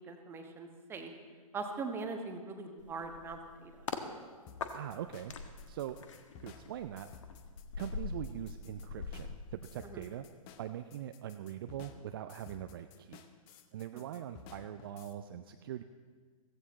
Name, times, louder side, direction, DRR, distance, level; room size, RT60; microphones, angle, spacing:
voice 1, 0.0-1.1 1.5-3.9 9.8-10.0 13.9-14.0, right 4 dB, 10° right, 4 dB, 1.3 m, -41 dB
sound 1, 2.8-4.1 4.6-10.2 10.5-10.8, left 5 dB, 55° left, 1.4 m, -44 dB
sound 2, 4.5-15.1, left 7 dB, 25° left, 0.9 m, -55 dB
voice 2, 4.7-5.3 5.7-6.0 6.4-7.1 7.7-10.3 10.6-13.2 13.7-15.8, right 11 dB, 40° right, 8 dB, 0.5 m, -42 dB
15.5 x 15.5 x 4.2 m, 1.5 s
figure-of-eight pair, 120°, 19 cm